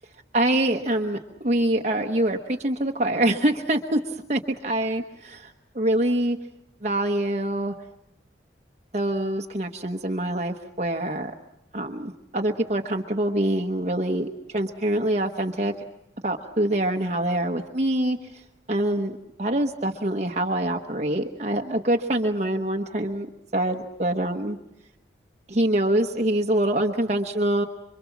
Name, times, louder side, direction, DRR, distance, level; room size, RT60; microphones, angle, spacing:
voice 1, 0.3-4.0 4.3-6.4 6.8-7.7 8.9-11.3 11.7-15.7 16.2-18.2 18.7-23.3 23.5-24.6 25.5-27.7, right 1 dB, 40° right, 3 dB, 1.1 m, -25 dB
26.5 x 24.5 x 7.2 m, 0.85 s
head